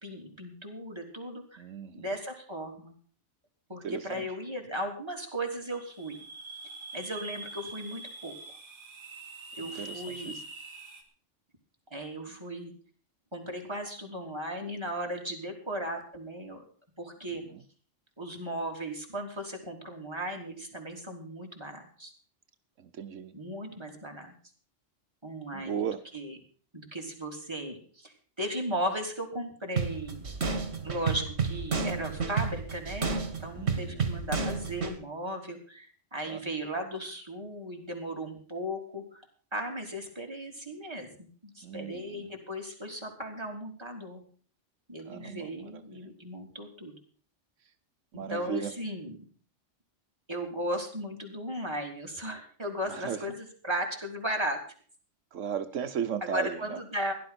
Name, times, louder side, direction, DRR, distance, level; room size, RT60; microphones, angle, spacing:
voice 1, 0.0-1.6 1.9-2.9 3.7-6.2 6.9-8.4 9.6-10.4 11.9-12.7 13.3-16.6 17.0-17.4 18.2-22.1 23.3-24.3 25.2-25.9 26.1-26.4 26.7-30.2 30.8-33.1 33.4-39.2 39.5-44.2 44.9-47.0 48.1-49.2 50.3-54.6 56.2-57.1, equal, 20° right, 1 dB, 3.5 m, -36 dB
voice 2, 1.6-2.0 3.8-4.3 9.6-10.3 23.0-23.3 25.5-26.0 33.6-34.0 36.3-36.4 41.6-42.3 45.1-45.8 48.1-48.7 52.9-53.2 55.3-56.6, right 8 dB, 85° right, 9 dB, 1.3 m, -35 dB
sound 1, 5.7-11.0, right 2 dB, 45° right, 3.8 m, -44 dB
sound 2, 29.8-35.0, right 5 dB, 60° right, 2.1 m, -31 dB
17.0 x 11.5 x 5.9 m, 0.43 s
omnidirectional pair, 1.3 m